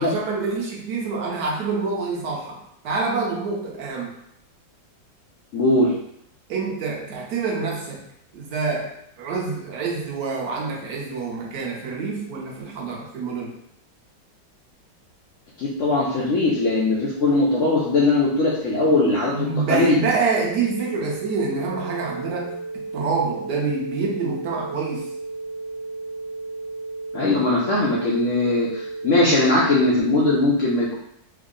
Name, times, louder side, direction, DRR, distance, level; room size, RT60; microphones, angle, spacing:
voice 1, 0.0-4.1 6.5-8.0 8.3-13.6 19.3-25.1, right 4 dB, 70° right, -2 dB, 1.3 m, -27 dB
voice 2, 5.5-5.9 15.6-20.0 27.1-31.0, left 2 dB, 75° left, -5 dB, 0.6 m, -20 dB
sound 1, 20.5-30.0, right 3 dB, 50° right, 0.6 m, -34 dB
3.6 x 2.0 x 3.7 m, 0.73 s
omnidirectional pair, 2.0 m